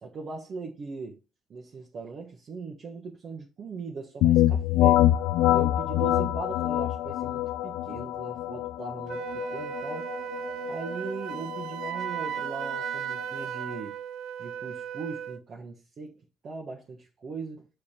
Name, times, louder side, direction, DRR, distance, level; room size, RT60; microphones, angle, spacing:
voice 1, 0.0-1.2 1.5-5.1 5.5-10.1 10.6-14.0 14.4-17.7, right 4 dB, 50° right, 1.4 m, -39 dB
sound 1, 4.2-13.8, left 13 dB, 85° left, 0.4 m, -26 dB
Wind instrument woodwind instrument, 9.1-15.4, right 10 dB, 75° right, 0.6 m, -36 dB
6.8 x 4.7 x 4.4 m
cardioid pair, 100°, 0 cm